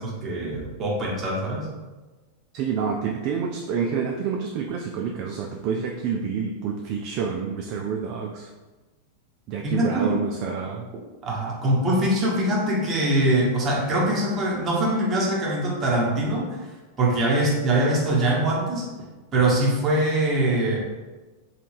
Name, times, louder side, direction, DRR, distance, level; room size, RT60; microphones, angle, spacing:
voice 1, 0.0-1.7 9.6-10.1 11.2-16.6 17.0-18.9 19.3-20.8, right 1 dB, 25° right, -4 dB, 1.1 m, -23 dB
voice 2, 2.5-8.5 9.5-10.9, right 6 dB, 40° right, 1 dB, 0.3 m, -28 dB
3.1 x 2.7 x 3.3 m, 1.2 s
figure-of-eight pair, 90°, 0 cm